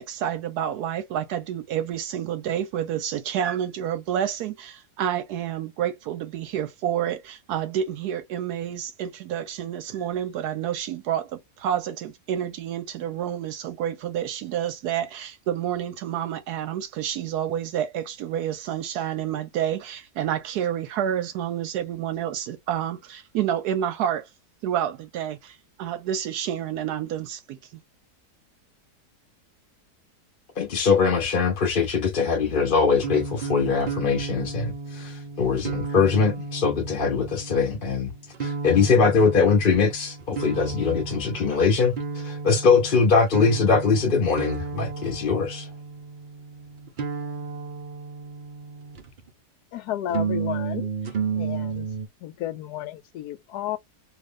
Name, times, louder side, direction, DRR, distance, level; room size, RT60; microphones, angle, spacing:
voice 1, 0.0-24.3 24.6-27.8, right 10 dB, 80° right, 1.1 m, -29 dB
voice 2, 30.6-38.1 38.4-45.7, left 5 dB, 40° left, 0.9 m, -22 dB
sound 1, 33.0-49.3 50.1-52.1, right 5 dB, 55° right, 0.5 m, -33 dB
voice 3, 49.7-50.9 51.3-51.9 52.2-53.8, left 11 dB, 80° left, 1.1 m, -32 dB
2.8 x 2.5 x 3.4 m
omnidirectional pair, 1.7 m